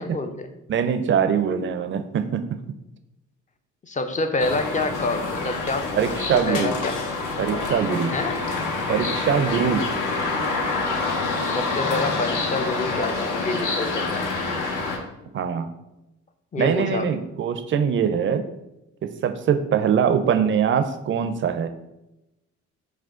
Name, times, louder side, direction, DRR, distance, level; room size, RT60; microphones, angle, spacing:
voice 1, 0.0-0.5 3.8-7.0 8.1-8.4 11.4-14.3 16.5-17.2, left 3 dB, 25° left, 8 dB, 0.4 m, -27 dB
voice 2, 0.7-2.5 6.0-6.8 7.4-8.1 8.9-9.8 15.3-15.7 16.6-18.4 19.0-21.7, right 7 dB, 40° right, 9 dB, 0.4 m, -22 dB
sound 1, 4.4-15.0, left 3 dB, 80° left, 0.9 m, -27 dB
4.9 x 2.2 x 3.6 m, 0.93 s
cardioid pair, 90°, 30 cm